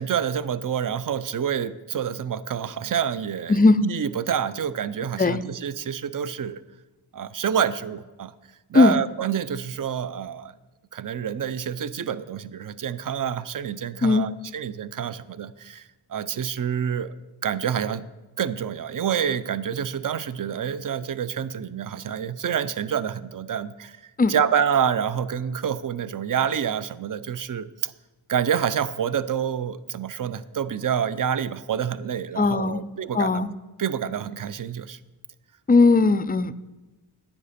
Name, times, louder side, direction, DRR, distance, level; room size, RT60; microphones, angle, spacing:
voice 1, 0.0-6.6 7.1-8.3 8.7-10.5 10.9-17.1 17.4-18.1 18.4-27.9 28.3-33.4 33.8-35.0, right 8 dB, 40° right, 15 dB, 0.5 m, -27 dB
voice 2, 3.5-3.9 5.2-5.4 8.7-9.0 14.0-14.3 24.2-24.3 32.4-32.8 33.1-33.5 35.7-36.5, left 3 dB, 20° left, 15 dB, 0.4 m, -18 dB
10.0 x 8.5 x 4.2 m, 1.1 s
cardioid pair, 55°, 49 cm